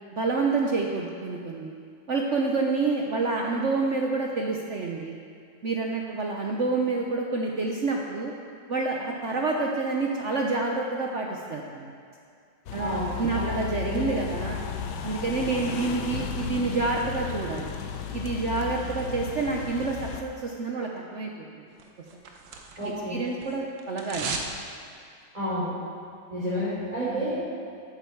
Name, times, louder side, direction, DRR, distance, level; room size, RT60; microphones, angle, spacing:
voice 1, 0.1-1.7 2.1-5.2 5.6-8.3 8.7-11.9 12.7-14.7 15.0-17.7 18.1-21.7 22.8-24.3 27.0-27.3, right 3 dB, 50° right, 0 dB, 0.9 m, -28 dB
sound 1, 12.7-20.2, left 7 dB, 70° left, 1.3 m, -34 dB
voice 2, 12.8-13.5 13.9-14.1 22.8-23.2 25.3-25.7 26.3-27.4, equal, 20° right, -12 dB, 3.8 m, -30 dB
sound 2, 21.8-23.0 23.3-24.6 24.9-25.0, right 4 dB, 75° right, 1.7 m, -35 dB
14.0 x 9.0 x 4.6 m, 2.2 s
omnidirectional pair, 2.0 m